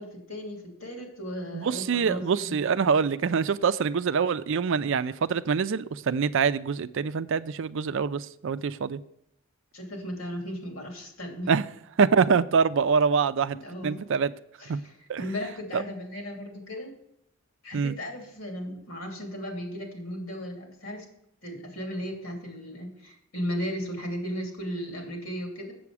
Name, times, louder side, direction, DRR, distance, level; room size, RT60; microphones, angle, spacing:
voice 1, 0.0-2.6 9.7-11.5 13.5-14.0 14.6-17.0 17.6-21.1 21.4-25.7, equal, 70° left, 2.8 m, -36 dB
voice 2, 1.5-9.0 11.5-11.6 12.0-13.6 13.8-14.3 14.7-14.8 15.1-15.2 15.7-15.8 17.7-17.9, right 5 dB, 65° right, 0.4 m, -25 dB
7.6 x 7.1 x 4.8 m
head